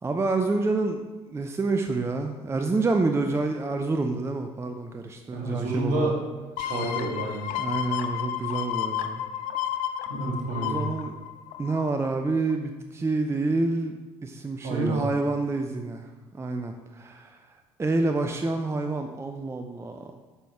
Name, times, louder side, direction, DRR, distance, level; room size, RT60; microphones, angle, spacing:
voice 1, 0.0-6.1 7.6-9.2 10.5-11.1 11.6-17.4 17.8-20.1, right 3 dB, 15° right, 5 dB, 0.5 m, -28 dB
voice 2, 5.3-6.1 6.6-7.4 10.1-10.8 14.6-15.0, right 2 dB, 55° right, -1 dB, 1.9 m, -29 dB
sound 1, 6.6-12.1 12.5-12.6, left 10 dB, 60° left, 0.6 m, -32 dB
9.5 x 5.9 x 3.5 m, 1.2 s
figure-of-eight pair, 55°, 16 cm